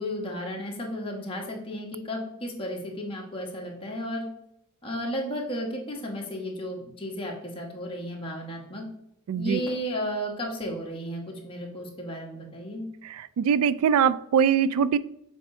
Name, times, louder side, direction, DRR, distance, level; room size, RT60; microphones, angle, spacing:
voice 1, 0.0-4.3 4.8-8.8 9.3-12.8, equal, 25° left, -1 dB, 1.2 m, -33 dB
voice 2, 9.3-9.6 13.0-15.0, right 7 dB, 80° right, 17 dB, 0.3 m, -22 dB
6.8 x 3.6 x 4.3 m, 0.79 s
head